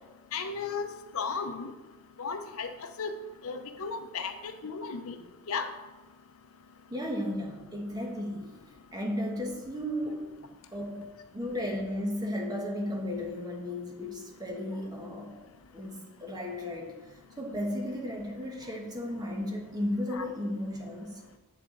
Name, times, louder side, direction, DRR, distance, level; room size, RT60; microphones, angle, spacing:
voice 1, 0.3-0.9 1.1-1.7 2.2-3.1 3.4-5.2 5.5-5.7 20.1-20.2, left 5 dB, 65° left, 7 dB, 0.6 m, -35 dB
voice 2, 6.9-8.6 8.9-10.3 10.7-11.1 11.3-15.3 15.7-16.9 17.4-21.2, left 1 dB, 20° right, 0 dB, 1.2 m, -34 dB
8.0 x 6.7 x 3.9 m, 1.2 s
head